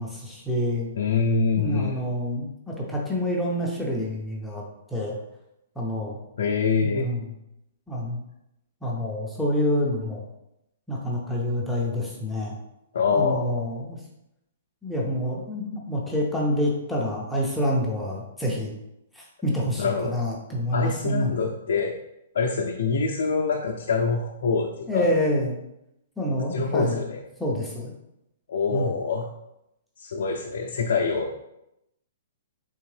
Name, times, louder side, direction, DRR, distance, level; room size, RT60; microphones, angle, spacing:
voice 1, 0.0-0.9 1.6-4.6 4.9-5.2 5.8-6.2 6.8-7.3 7.9-8.2 8.8-10.2 10.9-12.6 13.1-14.0 14.8-18.7 19.2-21.3 24.9-25.6 26.2-27.0 27.4-27.9 28.7-28.9, equal, ahead, -4 dB, 0.5 m, -27 dB
voice 2, 1.0-2.1 6.4-7.1 12.9-13.6 19.8-20.2 20.7-21.9 22.3-25.1 26.5-27.2 28.5-29.3 30.0-31.3, left 5 dB, 70° left, 0 dB, 0.4 m, -25 dB
3.5 x 3.0 x 3.2 m, 0.85 s
hypercardioid pair, 170°, 0 cm